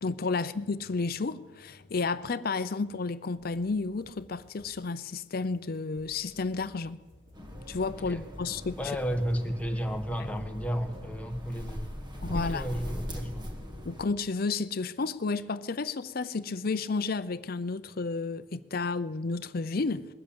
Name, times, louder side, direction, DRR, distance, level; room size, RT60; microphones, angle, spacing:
voice 1, 0.0-7.0 7.7-8.8 10.2-10.3 12.2-12.7 13.9-20.1, left 4 dB, 50° left, 0.6 m, -31 dB
sound 1, 3.4-13.9, left 1 dB, 75° right, 4.4 m, -60 dB
sound 2, 7.3-14.0, equal, 20° right, 1.9 m, -40 dB
voice 2, 8.8-11.8 12.3-13.5, equal, 5° left, 1.2 m, -33 dB
20.5 x 7.9 x 8.6 m
head